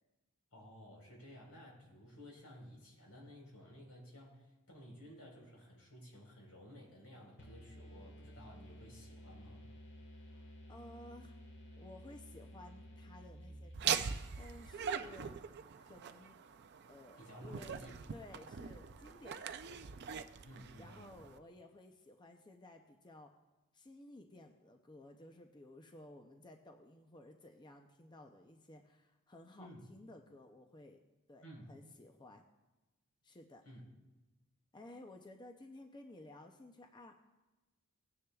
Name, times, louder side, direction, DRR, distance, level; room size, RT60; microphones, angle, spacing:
voice 1, 0.5-9.7 17.2-18.0 20.4-21.2 29.6-29.9 31.4-31.8 33.6-33.9, equal, 85° left, -1 dB, 4.2 m, -55 dB
sound 1, 7.4-15.1, equal, 55° left, 1.7 m, -54 dB
voice 2, 10.1-11.4 11.8-15.5 15.8-16.4 16.9-17.8 18.1-20.4 20.8-23.3 23.7-31.0 31.3-32.4 33.2-33.6 34.7-37.1, left 1 dB, 20° left, 3 dB, 0.5 m, -56 dB
Laughter, 13.7-21.4, right 7 dB, 50° right, 0.5 m, -42 dB
18.0 x 9.8 x 2.3 m, 1.1 s
head